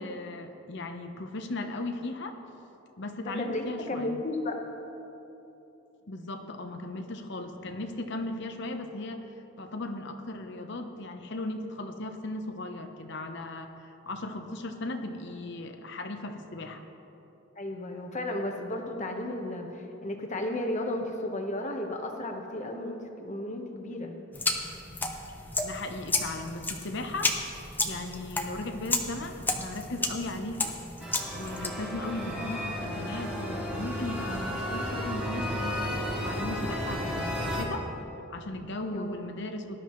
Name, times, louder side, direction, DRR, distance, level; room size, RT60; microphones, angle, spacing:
voice 1, 0.0-2.4 3.0-4.2 6.1-9.2 9.6-16.8 25.6-30.8 31.3-37.9 38.3-39.8, left 2 dB, 60° left, 6 dB, 0.9 m, -37 dB
voice 2, 3.2-4.6 17.6-24.1 38.9-39.2, left 1 dB, 35° left, 3 dB, 1.2 m, -34 dB
sound 1, 24.3-31.7, left 2 dB, 10° left, 0.8 m, -32 dB
sound 2, 31.0-37.6, equal, 5° right, 2.2 m, -33 dB
19.0 x 12.0 x 3.2 m, 3.0 s
head